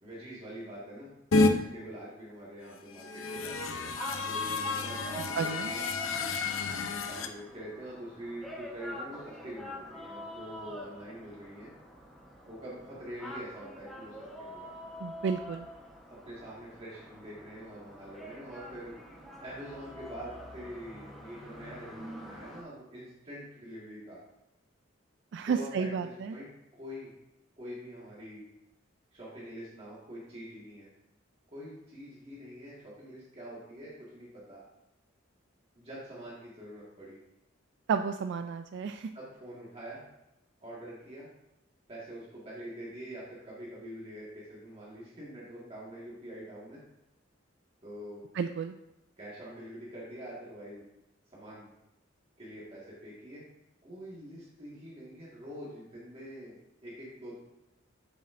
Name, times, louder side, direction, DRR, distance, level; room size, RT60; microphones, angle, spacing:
voice 1, 0.0-3.8 4.2-5.8 7.1-11.7 12.5-14.7 16.1-18.9 19.4-24.2 25.5-27.1 27.6-28.4 29.1-30.9 31.5-34.6 35.7-37.2 39.1-40.0 40.6-41.3 41.9-46.8 47.8-48.2 49.2-50.8 51.3-51.7 52.4-53.4 53.8-57.4, equal, 30° right, -7 dB, 1.7 m, -45 dB
sound 1, 1.3-1.5 2.9-7.3, left 3 dB, 90° left, 0.6 m, -30 dB
sound 2, 3.3-22.6, equal, ahead, 1.0 m, -46 dB
voice 2, 5.4-5.7 15.0-15.7 25.3-26.4 37.9-39.1 48.3-48.7, right 6 dB, 60° right, 8 dB, 0.3 m, -32 dB
8.3 x 7.1 x 2.5 m, 0.92 s
head